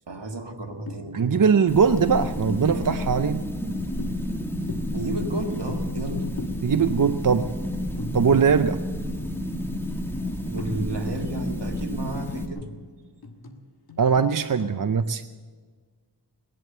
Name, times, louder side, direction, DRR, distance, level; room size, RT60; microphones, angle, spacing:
voice 1, 0.1-1.4 4.9-6.3 10.4-12.6, right 2 dB, 70° right, 3 dB, 1.8 m, -32 dB
sound 1, 0.9-1.3 1.6-1.7 2.0-6.1 6.4-6.7 7.0-7.3 7.6-7.7 8.0-8.9 9.6-9.7 10.6-11.5 11.9-14.8, left 2 dB, 60° left, 1.4 m, -40 dB
voice 2, 1.1-3.4 6.6-7.5 8.1-8.8 14.0-15.2, right 6 dB, 50° right, 10 dB, 0.6 m, -21 dB
sound 2, 1.7-12.5, equal, 5° left, 1.9 m, -30 dB
18.5 x 11.0 x 6.7 m, 1.5 s
wide cardioid pair, 55°, 43 cm